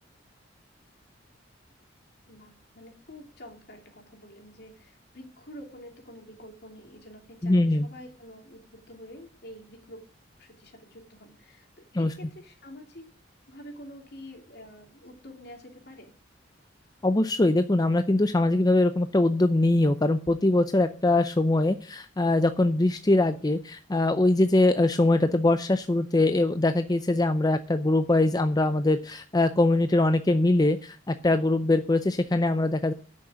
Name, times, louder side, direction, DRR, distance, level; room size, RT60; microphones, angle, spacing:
voice 1, 2.3-10.0 10.4-13.1 13.5-16.1, equal, 55° left, 3 dB, 2.9 m, -47 dB
voice 2, 7.4-7.9 11.9-12.1 17.0-32.9, left 2 dB, 20° left, 9 dB, 0.5 m, -22 dB
9.7 x 6.5 x 8.7 m, 0.39 s
head